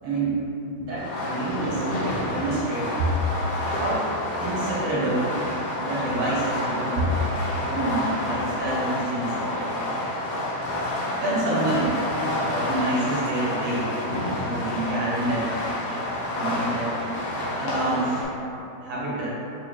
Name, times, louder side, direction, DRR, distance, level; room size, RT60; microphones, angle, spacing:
voice 1, 0.0-0.4 0.8-1.9 2.2-2.9 3.7-4.1 4.4-5.2 5.8-7.1 7.7-9.5 11.0-12.0 12.4-13.9 14.4-15.5 16.3-16.9 17.6-18.2 18.8-19.3, right 2 dB, 85° right, -6 dB, 1.8 m, -27 dB
Fireworks, 1.0-18.2, left 1 dB, 70° left, 1.4 m, -29 dB
4.0 x 2.8 x 3.1 m, 2.8 s
omnidirectional pair, 2.1 m